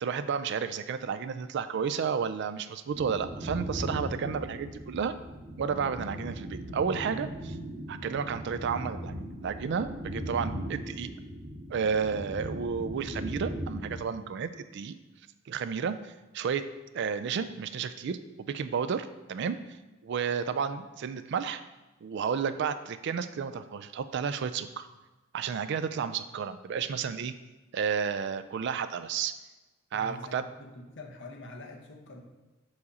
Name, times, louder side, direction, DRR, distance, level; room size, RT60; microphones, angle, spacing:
voice 1, 0.0-5.1 5.6-7.6 7.9-11.1 11.7-15.0 15.5-16.6 16.9-18.2 18.5-19.6 20.0-21.6 22.0-24.9 25.3-27.3 27.7-29.3 29.9-30.4, right 6 dB, 55° right, 12 dB, 0.3 m, -32 dB
sound 1, 2.9-14.0, equal, 35° right, 2.0 m, -38 dB
voice 2, 29.9-32.2, left 2 dB, 60° left, 2 dB, 0.9 m, -45 dB
4.9 x 4.8 x 4.1 m, 1.1 s
head